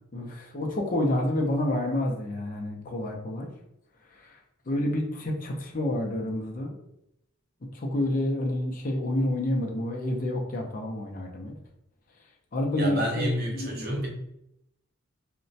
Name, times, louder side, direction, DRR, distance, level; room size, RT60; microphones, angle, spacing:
voice 1, 0.1-3.5 4.2-4.4 4.7-6.7 7.7-11.5 12.5-13.9, left 1 dB, 45° left, 1 dB, 0.5 m, -29 dB
voice 2, 12.8-14.1, equal, 50° right, 0 dB, 0.7 m, -29 dB
3.0 x 2.1 x 2.7 m, 0.80 s
head